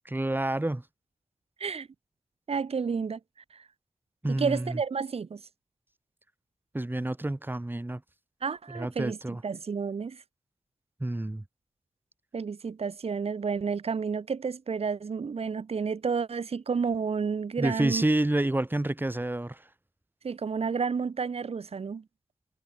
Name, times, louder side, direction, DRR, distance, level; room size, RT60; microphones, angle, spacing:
voice 1, 0.1-0.9 4.2-4.8 6.7-8.0 8.7-9.4 11.0-11.4 17.6-19.7, right 1 dB, 20° right, 3.8 m, -29 dB
voice 2, 2.5-3.2 3.5-3.6 4.3-5.4 8.4-9.2 9.4-10.2 12.3-18.0 20.2-22.0, right 5 dB, 85° right, 2.6 m, -31 dB
wide cardioid pair, 75°, 10 cm